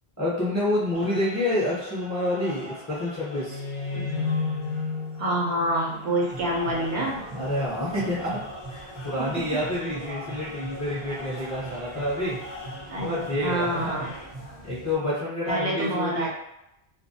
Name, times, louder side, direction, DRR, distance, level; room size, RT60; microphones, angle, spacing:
voice 1, 0.2-3.6 7.3-8.4 8.7-12.4 13.0-14.0 14.6-16.3, left 1 dB, 20° left, -8 dB, 0.7 m, -28 dB
sound 1, 0.9-14.3, left 1 dB, 55° left, 0.3 m, -44 dB
sound 2, 3.4-6.8, left 4 dB, 70° left, 0.8 m, -32 dB
voice 2, 3.9-4.2 5.2-7.2 9.2-9.3 12.9-14.1 15.5-16.3, right 1 dB, 65° right, -3 dB, 0.8 m, -27 dB
Taiwan Taipei temple, 6.3-14.9, right 2 dB, 25° right, 0.6 m, -40 dB
2.4 x 2.1 x 2.6 m, 0.84 s
omnidirectional pair, 1.1 m